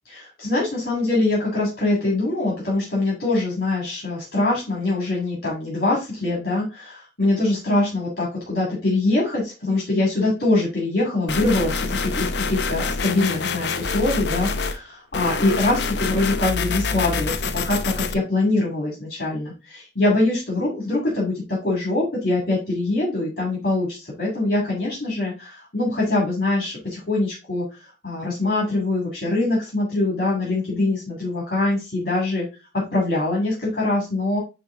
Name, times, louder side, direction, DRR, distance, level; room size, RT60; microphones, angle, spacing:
voice 1, 0.0-32.4 32.9-34.4, left 2 dB, 55° left, -3 dB, 2.7 m, -23 dB
sound 1, 11.3-14.8 15.1-18.1, left 4 dB, 70° left, 0.7 m, -26 dB
9.5 x 3.2 x 3.9 m, 0.29 s
head